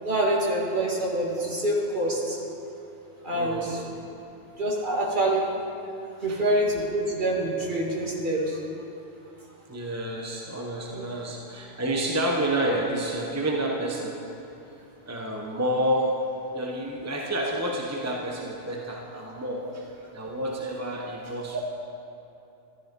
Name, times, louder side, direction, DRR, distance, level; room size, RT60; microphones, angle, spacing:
voice 1, 0.0-2.4 3.2-3.8 4.6-5.4 6.2-8.6 10.9-11.1 21.5-21.6, right 1 dB, 45° right, -3 dB, 2.1 m, -26 dB
voice 2, 3.3-3.9 6.3-6.4 9.7-14.2 15.1-16.2 16.5-21.6, right 1 dB, 15° right, -1 dB, 1.0 m, -29 dB
13.5 x 12.5 x 5.3 m, 2.9 s
omnidirectional pair, 1.2 m